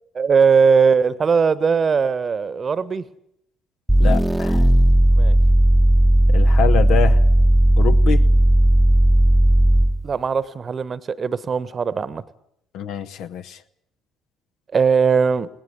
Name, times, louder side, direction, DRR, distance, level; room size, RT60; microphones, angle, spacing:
voice 1, 0.1-3.1 5.1-5.4 10.0-12.2 14.7-15.5, right 5 dB, 35° right, 18 dB, 1.2 m, -19 dB
sound 1, 3.9-10.1, right 1 dB, 5° right, 1.0 m, -15 dB
voice 2, 4.0-4.7 6.3-7.2 7.8-8.3 12.7-13.6, left 8 dB, 60° left, 9 dB, 1.1 m, -25 dB
20.0 x 18.5 x 9.5 m, 0.73 s
figure-of-eight pair, 50°, 0 cm